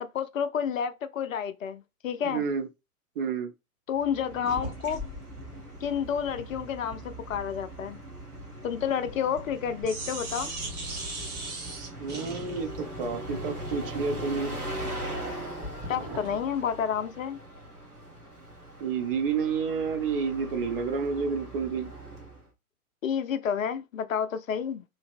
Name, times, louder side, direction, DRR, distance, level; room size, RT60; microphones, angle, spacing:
voice 1, 0.1-2.4 3.9-5.0 5.8-8.0 8.6-10.5 15.9-17.4 23.0-24.8, left 7 dB, 65° left, 0.5 m, -30 dB
voice 2, 2.2-2.7 3.2-3.5 12.0-14.6 18.8-21.9, right 5 dB, 40° right, 0.5 m, -30 dB
Bus, 3.9-22.5, right 1 dB, 90° right, 1.1 m, -41 dB
sound 1, 4.4-9.6 9.8-16.4, right 1 dB, 20° right, 1.1 m, -40 dB
3.1 x 2.6 x 2.4 m
figure-of-eight pair, 105°, 44 cm